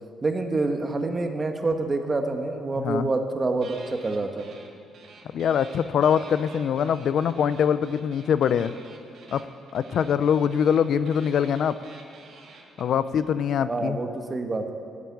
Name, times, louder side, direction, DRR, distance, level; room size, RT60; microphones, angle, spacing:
voice 1, 0.2-4.4 13.6-14.7, right 3 dB, 25° right, 5 dB, 1.3 m, -27 dB
voice 2, 2.8-3.1 5.3-8.7 9.3-9.5 9.7-11.8 12.8-14.0, left 8 dB, 60° left, 14 dB, 0.5 m, -23 dB
sound 1, 3.6-4.7 4.9-13.2, right 4 dB, 65° right, 2.5 m, -49 dB
14.0 x 8.3 x 9.7 m, 2.4 s
cardioid pair, 125°, 0 cm